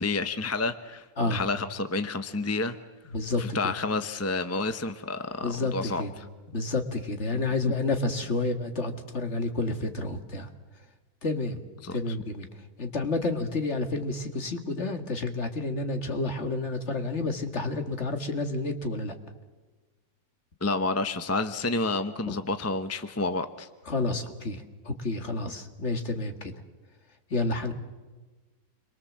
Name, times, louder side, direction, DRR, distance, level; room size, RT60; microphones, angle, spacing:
voice 1, 0.0-2.8 3.4-6.0 11.8-12.0 20.6-23.7, left 3 dB, 15° left, 10 dB, 0.7 m, -29 dB
voice 2, 3.1-3.7 5.4-6.1 6.5-10.5 11.2-11.6 11.9-12.5 12.8-19.1 22.3-22.4 23.9-26.5 27.3-27.7, left 3 dB, 45° left, 7 dB, 2.1 m, -30 dB
28.5 x 23.0 x 7.4 m, 1.3 s
omnidirectional pair, 1.6 m